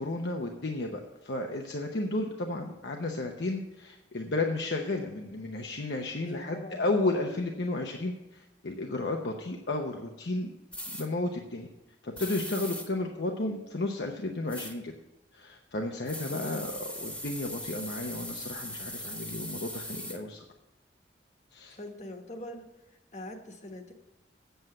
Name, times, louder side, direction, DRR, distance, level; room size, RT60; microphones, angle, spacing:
voice 1, 0.0-10.5 11.0-11.7 12.0-14.9 15.3-20.4 21.5-21.8, left 2 dB, 75° left, 2 dB, 0.9 m, -33 dB
voice 2, 6.2-6.8 16.3-16.7 21.7-22.6 23.1-23.9, left 1 dB, 45° left, 4 dB, 1.3 m, -43 dB
sound 1, 10.7-11.1 12.2-12.9 14.5-14.7 16.1-20.2, equal, 5° left, 1.2 m, -39 dB
8.0 x 7.9 x 7.7 m, 0.97 s
head